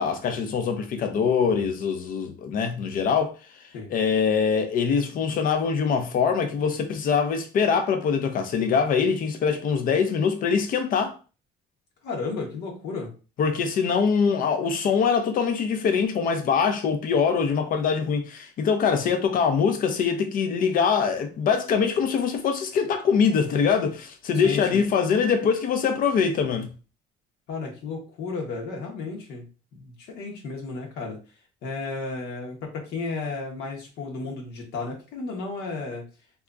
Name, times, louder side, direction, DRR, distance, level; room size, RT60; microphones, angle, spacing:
voice 1, 0.0-3.3 3.9-11.2 13.4-26.7, left 6 dB, 55° left, 0.6 m, -23 dB
voice 2, 12.0-13.1 24.4-24.8 27.5-29.4 29.7-31.2 31.6-36.0, left 4 dB, 80° left, 0.9 m, -33 dB
2.8 x 2.4 x 2.3 m
cardioid pair, 110°, 17 cm